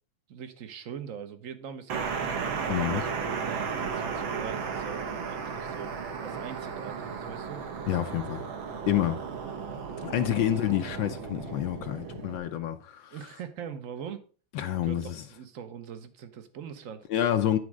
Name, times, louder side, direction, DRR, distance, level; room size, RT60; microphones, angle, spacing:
voice 1, 0.3-2.3 2.8-7.6 10.1-10.5 13.1-14.2 14.8-17.1, right 7 dB, 50° right, 1.0 m, -42 dB
sound 1, 1.9-12.4, right 6 dB, 70° right, 2.0 m, -34 dB
voice 2, 2.7-3.0 7.9-8.5 8.9-9.2 10.0-13.2 14.5-15.2 17.1-17.6, left 11 dB, 75° left, 1.3 m, -28 dB
9.7 x 4.3 x 6.1 m
omnidirectional pair, 2.3 m